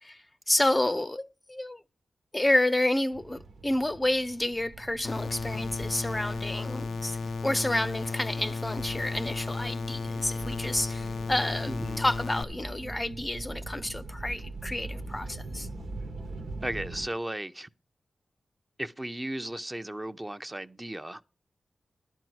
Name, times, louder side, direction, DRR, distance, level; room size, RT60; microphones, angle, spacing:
voice 1, 0.0-1.8 2.3-7.2 7.4-15.7, left 1 dB, 20° left, 0.6 m, -29 dB
sound 1, 3.1-17.1, right 2 dB, 90° right, 1.3 m, -42 dB
sound 2, 4.6-15.7, right 4 dB, 65° right, 0.9 m, -53 dB
sound 3, 5.0-12.4, left 4 dB, 80° left, 0.6 m, -34 dB
voice 2, 11.7-12.0 16.6-17.7 18.8-21.2, right 1 dB, 20° right, 0.7 m, -35 dB
11.5 x 4.5 x 7.9 m
cardioid pair, 50°, 0 cm